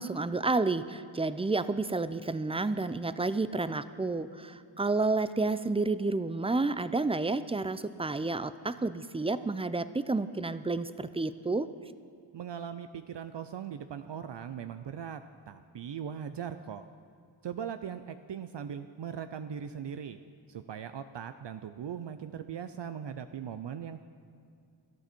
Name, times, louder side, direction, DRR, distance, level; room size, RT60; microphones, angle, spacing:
voice 1, 0.0-11.7, right 3 dB, 10° right, 14 dB, 0.5 m, -30 dB
voice 2, 12.3-15.2 15.5-16.8 17.4-20.2 20.5-24.0, right 8 dB, 60° right, 10 dB, 0.6 m, -39 dB
18.0 x 12.5 x 4.5 m, 2.4 s
cardioid pair, 70°, 48 cm